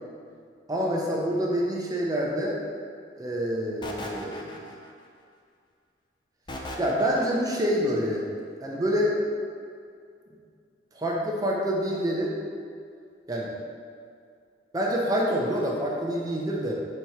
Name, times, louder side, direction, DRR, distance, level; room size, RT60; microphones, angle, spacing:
voice 1, 0.7-2.6 3.2-4.6 6.8-8.2 8.6-9.1 10.9-12.4 13.3-13.5 14.7-16.7, equal, 20° right, -2 dB, 0.7 m, -27 dB
sound 1, 3.8-5.1 6.5-7.6, left 1 dB, 25° left, 0.5 m, -38 dB
5.3 x 4.3 x 4.7 m, 2.3 s
head